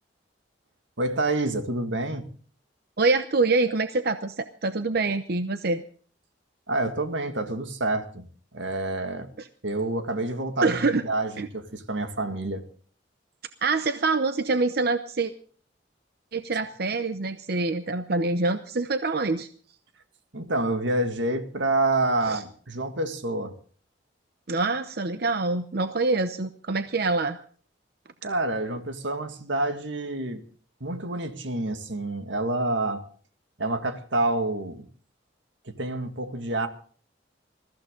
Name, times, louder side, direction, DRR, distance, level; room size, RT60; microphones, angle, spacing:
voice 1, 1.0-2.3 6.7-8.3 8.5-9.3 9.6-12.6 20.3-23.5 28.2-30.4 30.8-33.1 33.6-34.9 35.7-36.7, right 2 dB, 85° right, 1.9 m, -28 dB
voice 2, 3.0-5.8 9.4-9.5 10.6-11.0 11.4-11.5 13.6-15.3 16.3-19.5 22.3-22.4 24.5-27.4, right 3 dB, 55° right, 0.8 m, -25 dB
21.5 x 14.5 x 3.8 m
head